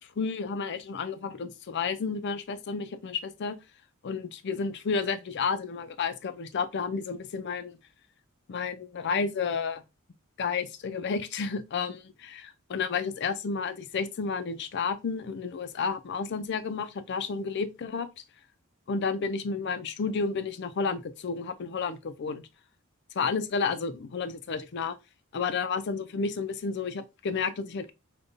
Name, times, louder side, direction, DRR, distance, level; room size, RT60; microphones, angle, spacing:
voice 1, 0.2-3.6 4.0-7.8 8.5-9.8 10.4-18.2 18.9-22.4 23.1-25.0 25.3-27.9, left 5 dB, 55° left, 0.4 m, -31 dB
5.0 x 2.3 x 2.6 m
head